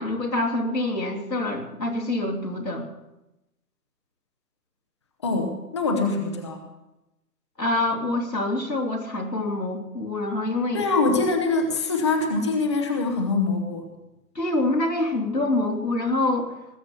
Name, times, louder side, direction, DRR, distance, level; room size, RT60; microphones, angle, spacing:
voice 1, 0.0-2.8 7.6-10.9 14.3-16.5, left 2 dB, 90° left, -2 dB, 3.3 m, -26 dB
voice 2, 5.2-6.6 10.7-13.9, left 3 dB, 20° left, 3 dB, 1.0 m, -24 dB
19.5 x 7.7 x 6.8 m, 0.94 s
figure-of-eight pair, 150°, 48 cm